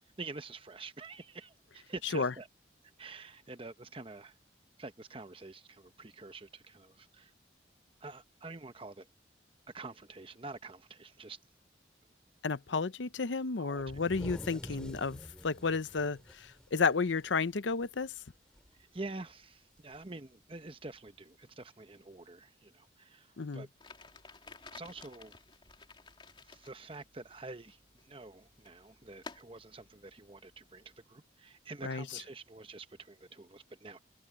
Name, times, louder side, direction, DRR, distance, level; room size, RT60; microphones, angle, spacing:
voice 1, 0.0-2.5 3.0-4.3 4.8-7.3 8.0-9.1 9.7-11.4 13.6-14.0 14.5-14.8 18.8-23.3 23.5-23.7 24.7-25.3 26.5-27.8 28.1-34.0, right 3 dB, 30° right, 1.0 m, -47 dB
voice 2, 12.4-16.2 16.7-18.1 23.4-23.6 31.8-32.0, left 4 dB, 85° left, 0.7 m, -32 dB
sound 1, 13.8-17.5 17.8-18.0 18.4-18.8 19.9-20.0 21.1-21.2, equal, 5° left, 3.9 m, -46 dB
sound 2, 23.8-31.0, left 3 dB, 25° left, 3.4 m, -54 dB
head